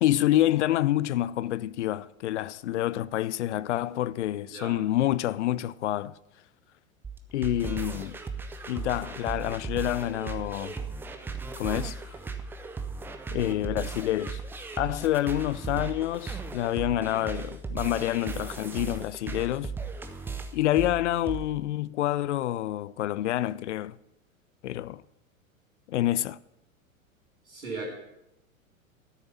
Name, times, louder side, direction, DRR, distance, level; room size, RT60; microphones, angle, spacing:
voice 1, 0.0-6.1 7.3-8.2 8.7-10.7 11.6-12.0 13.3-14.4 14.8-19.7 20.5-24.0 24.6-25.0 25.9-26.4, left 14 dB, 60° left, 0.5 m, -27 dB
voice 2, 4.5-4.8 27.4-27.9, right 3 dB, 75° right, 3.0 m, -37 dB
sound 1, 7.0-21.4, right 4 dB, 5° right, 0.4 m, -36 dB
12.5 x 6.9 x 5.6 m
figure-of-eight pair, 100°, 41 cm